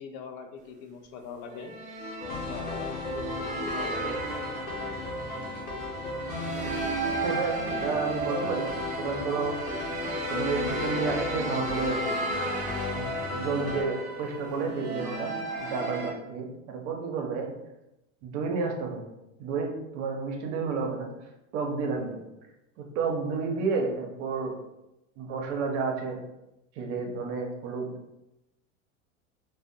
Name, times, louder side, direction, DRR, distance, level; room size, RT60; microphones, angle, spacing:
voice 1, 0.0-1.7 2.5-4.2, left 5 dB, 50° left, 5 dB, 0.4 m, -42 dB
sound 1, 1.5-16.1, right 2 dB, 20° right, 0.3 m, -34 dB
sound 2, 2.2-13.8, left 4 dB, 85° left, 0.7 m, -36 dB
voice 2, 7.2-9.6 10.3-12.0 12.9-17.5 18.2-19.0 19.4-21.1 21.5-22.2 22.8-24.5 25.2-26.2 26.8-27.9, right 4 dB, 60° right, 2 dB, 0.6 m, -31 dB
2.4 x 2.1 x 2.6 m, 0.92 s
hypercardioid pair, 100°, 39 cm